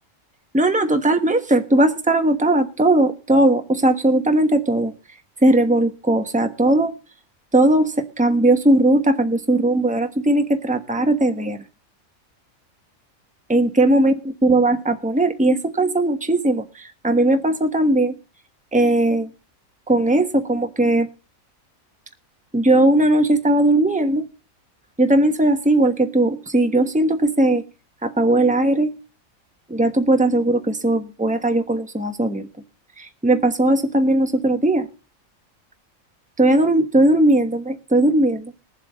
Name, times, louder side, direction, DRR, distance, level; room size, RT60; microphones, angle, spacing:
voice 1, 0.5-4.9 5.4-6.9 7.5-11.6 13.5-14.1 14.4-18.2 18.7-19.3 19.9-21.1 22.5-24.2 25.0-27.6 28.0-28.9 29.7-32.5 33.0-34.9 36.4-38.5, right 1 dB, 5° right, 6 dB, 1.1 m, -18 dB
21.5 x 7.5 x 4.0 m, 0.32 s
omnidirectional pair, 1.4 m